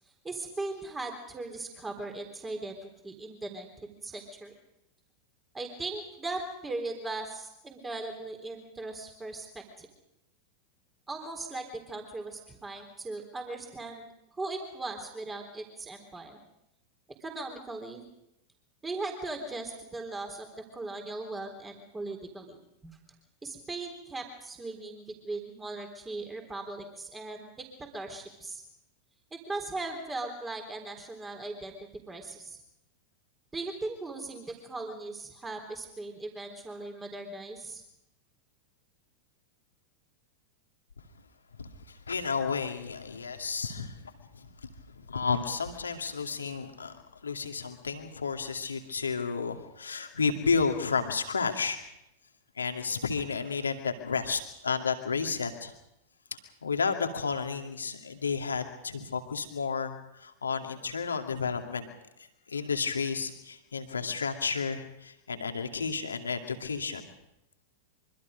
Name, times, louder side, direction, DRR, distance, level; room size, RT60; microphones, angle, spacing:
voice 1, 0.2-4.6 5.5-9.9 11.1-14.0 14.3-16.4 17.2-18.0 18.8-22.6 22.8-23.0 23.4-28.6 29.3-31.8 32.1-32.6 33.5-37.8, right 2 dB, 15° right, 4 dB, 3.8 m, -38 dB
voice 2, 41.6-44.0 44.4-51.8 52.6-55.7 56.3-61.9 62.5-67.1, left 5 dB, 75° left, 5 dB, 2.3 m, -32 dB
25.0 x 24.5 x 5.2 m, 0.86 s
figure-of-eight pair, 90°, 0 cm